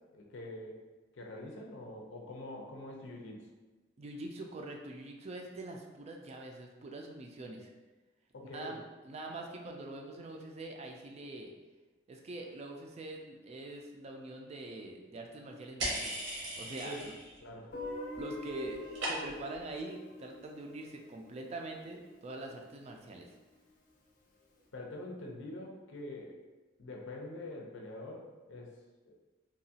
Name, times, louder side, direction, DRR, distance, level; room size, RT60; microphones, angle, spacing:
voice 1, 0.1-0.8 1.1-3.5 8.3-8.8 16.8-17.0 17.4-17.6 24.7-26.4 26.8-28.7 29.1-29.2, left 1 dB, 90° left, 0 dB, 0.5 m, -45 dB
voice 2, 4.0-7.7 8.5-11.5 12.1-17.1 17.6-17.7 18.2-23.4, right 2 dB, 35° right, 2 dB, 0.3 m, -44 dB
sound 1, 15.8-17.4 17.7-18.2 18.5-19.6, right 1 dB, 80° right, 0.8 m, -38 dB
Guitar, 17.7-22.6, left 2 dB, 45° left, 0.5 m, -46 dB
2.8 x 2.3 x 2.7 m, 1.2 s
head